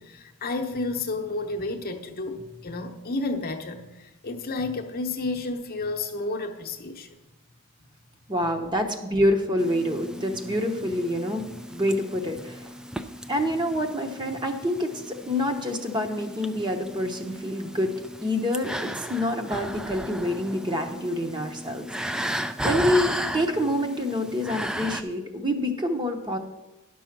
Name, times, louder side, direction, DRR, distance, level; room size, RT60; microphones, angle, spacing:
voice 1, 0.0-7.1, left 2 dB, 40° left, 3 dB, 0.8 m, -31 dB
voice 2, 8.3-11.5 11.7-12.7 13.3-18.0 18.2-21.9 22.6-26.4, left 1 dB, 20° right, 4 dB, 0.8 m, -27 dB
sound 1, 9.6-25.0, right 1 dB, 5° right, 0.3 m, -35 dB
11.0 x 6.2 x 5.9 m, 1.0 s
head